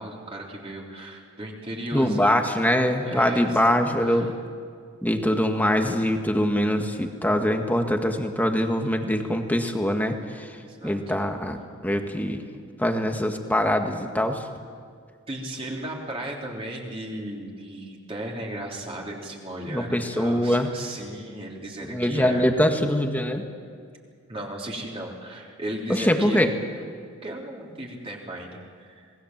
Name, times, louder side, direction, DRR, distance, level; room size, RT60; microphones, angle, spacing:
voice 1, 0.0-2.5 3.0-3.6 4.0-4.3 5.6-5.8 10.5-11.1 15.3-22.5 24.3-26.4 27.2-29.1, right 1 dB, 25° right, -2 dB, 3.5 m, -36 dB
voice 2, 1.9-4.3 5.0-10.5 10.8-12.4 12.8-14.4 19.7-20.7 21.8-23.4 25.9-26.5, equal, 10° left, 4 dB, 1.7 m, -23 dB
27.0 x 20.0 x 7.5 m, 2.2 s
head